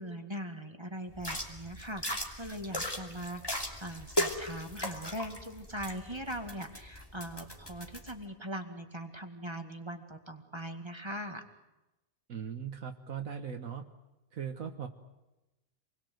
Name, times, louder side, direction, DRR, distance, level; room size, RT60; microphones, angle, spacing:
voice 1, 0.0-11.5, equal, 20° right, 5 dB, 2.2 m, -41 dB
sound 1, 1.1-8.1, equal, 15° left, 2.8 m, -38 dB
voice 2, 12.3-13.9 14.3-14.9, right 7 dB, 65° right, 5 dB, 1.7 m, -39 dB
28.0 x 21.5 x 7.9 m, 0.99 s
omnidirectional pair, 1.5 m